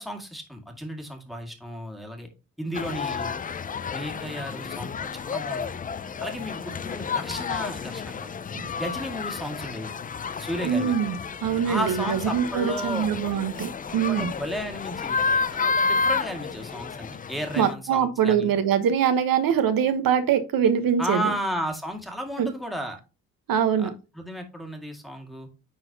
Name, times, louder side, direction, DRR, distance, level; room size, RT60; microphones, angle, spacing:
voice 1, 0.0-2.3 2.6-3.4 3.9-5.7 6.2-8.3 8.7-9.9 10.4-11.0 11.6-13.1 14.1-15.2 15.5-18.5 21.0-23.0 23.8-23.9 24.1-25.5, equal, ahead, 2.0 m, -33 dB
sound 1, 2.7-17.7, left 5 dB, 25° left, 0.4 m, -31 dB
voice 2, 10.6-11.2 11.4-14.3 17.6-21.3 22.4-22.5 23.5-23.9, right 8 dB, 80° right, 1.1 m, -23 dB
9.8 x 4.0 x 2.8 m
cardioid pair, 105°, 34 cm